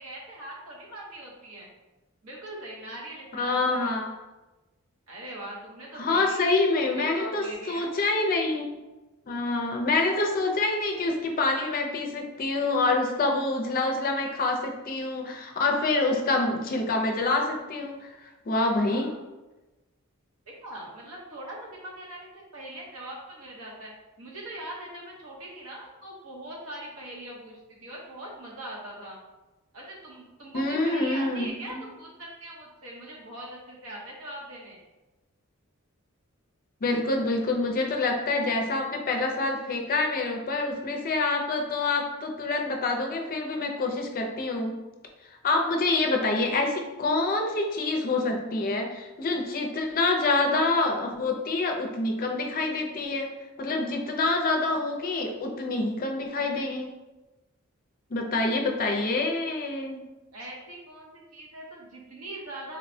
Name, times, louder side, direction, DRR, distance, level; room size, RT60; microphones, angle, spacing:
voice 1, 0.0-1.7 2.2-4.0 5.1-6.4 6.8-8.0 18.9-19.2 20.6-23.9 24.2-29.2 29.7-34.8 60.3-62.8, right 1 dB, 80° right, -3 dB, 0.9 m, -41 dB
voice 2, 3.3-4.1 6.0-8.7 9.3-18.0 18.5-19.1 30.5-31.8 36.8-44.7 45.4-53.3 53.6-56.9 58.1-60.0, left 3 dB, 40° left, 3 dB, 0.4 m, -26 dB
4.1 x 2.1 x 2.6 m, 1.1 s
head